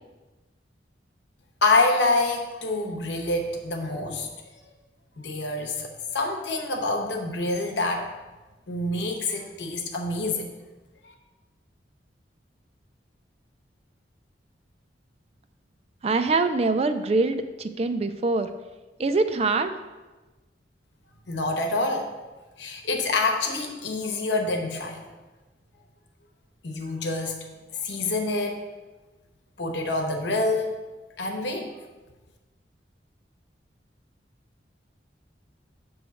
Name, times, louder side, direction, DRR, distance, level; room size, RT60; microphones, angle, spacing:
voice 1, 1.6-4.3 5.2-5.9 6.1-8.1 8.7-10.5 11.0-11.1 21.3-22.1 22.6-25.1 26.6-27.4 27.7-28.6 29.6-30.8 31.2-31.7, left 2 dB, 75° left, 3 dB, 1.0 m, -26 dB
voice 2, 16.0-18.5 19.0-19.7, right 3 dB, 35° right, 9 dB, 0.4 m, -24 dB
7.8 x 3.1 x 6.2 m, 1.2 s
head